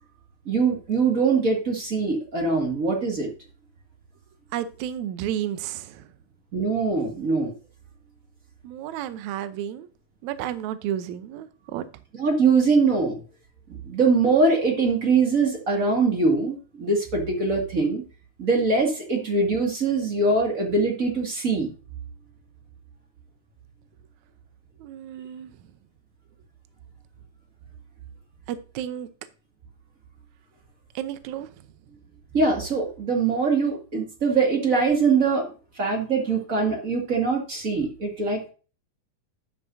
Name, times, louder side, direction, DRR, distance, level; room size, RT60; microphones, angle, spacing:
voice 1, 0.4-3.3 6.5-7.5 12.1-13.2 13.8-18.0 18.4-21.7 32.3-35.5 35.8-38.5, right 4 dB, 30° right, 1 dB, 1.7 m, -22 dB
voice 2, 4.5-6.1 8.6-9.9 10.2-11.8 19.2-19.3 24.8-25.5 28.5-29.1 30.9-31.5, right 11 dB, 75° right, 12 dB, 1.7 m, -32 dB
11.0 x 7.4 x 2.7 m, 0.35 s
omnidirectional pair, 4.2 m